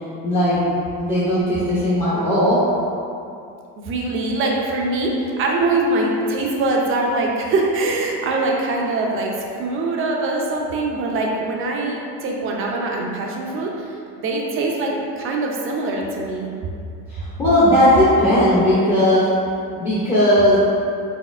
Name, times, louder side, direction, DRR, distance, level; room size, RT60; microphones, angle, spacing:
voice 1, 0.2-0.6 1.0-2.6 17.1-19.3 19.7-20.6, left 1 dB, 15° left, -11 dB, 0.5 m, -17 dB
voice 2, 3.8-16.5, right 2 dB, 35° right, -1 dB, 0.4 m, -23 dB
4.2 x 3.8 x 2.4 m, 2.5 s
cardioid pair, 165°, 38 cm